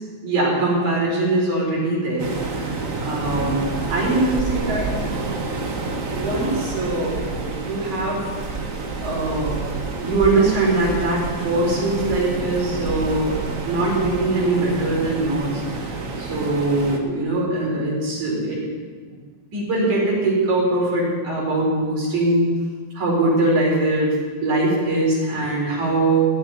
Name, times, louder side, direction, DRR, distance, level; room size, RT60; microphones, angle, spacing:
voice 1, 0.2-2.3 2.6-4.9 6.1-8.2 9.0-9.7 10.0-13.4 13.7-15.6 16.2-18.6 19.1-19.2 19.5-22.5 23.0-24.2 24.4-26.3, right 2 dB, 75° right, -4 dB, 6.1 m, -22 dB
Waves surf, 2.2-17.0, right 3 dB, 45° right, 1.0 m, -28 dB
16.0 x 7.4 x 9.7 m, 1.5 s
omnidirectional pair, 3.4 m